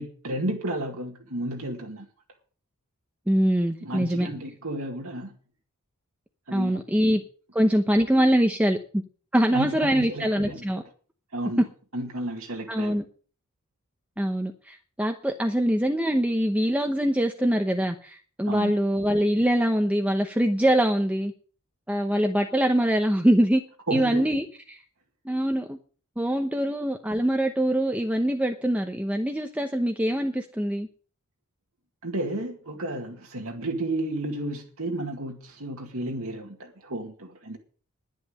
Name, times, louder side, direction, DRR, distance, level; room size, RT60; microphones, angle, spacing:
voice 1, 0.0-2.1 3.8-5.3 6.5-6.8 9.5-10.6 11.3-11.7 11.9-12.9 18.5-18.7 23.9-24.3 32.0-37.6, right 1 dB, 65° right, 2.0 m, -32 dB
voice 2, 3.3-4.3 6.5-7.2 7.5-9.0 9.3-10.8 12.7-13.0 14.2-21.3 21.9-23.6 23.9-24.8 25.2-25.8 26.2-30.9, equal, 5° right, 0.8 m, -23 dB
11.0 x 10.5 x 6.5 m
head